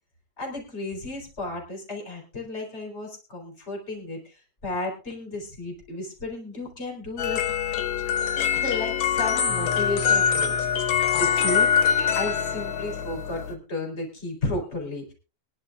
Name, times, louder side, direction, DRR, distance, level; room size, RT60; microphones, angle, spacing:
voice 1, 0.4-7.4 8.5-15.1, left 2 dB, 20° left, 0 dB, 4.1 m, -33 dB
sound 1, 7.2-13.5, left 7 dB, 75° left, 2.4 m, -24 dB
23.5 x 11.0 x 2.4 m, 0.33 s
omnidirectional pair, 3.4 m